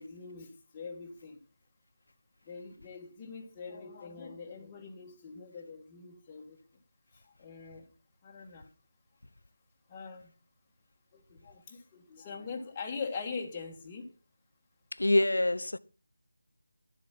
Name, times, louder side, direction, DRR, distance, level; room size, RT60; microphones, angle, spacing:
voice 1, 0.0-1.4 2.4-6.6 7.1-7.9 8.2-8.7 9.9-10.3 11.1-14.1, left 5 dB, 20° left, 1.7 m, -43 dB
voice 2, 15.0-15.8, left 1 dB, 70° left, 0.7 m, -25 dB
12.0 x 7.7 x 5.7 m
figure-of-eight pair, 160°, 0 cm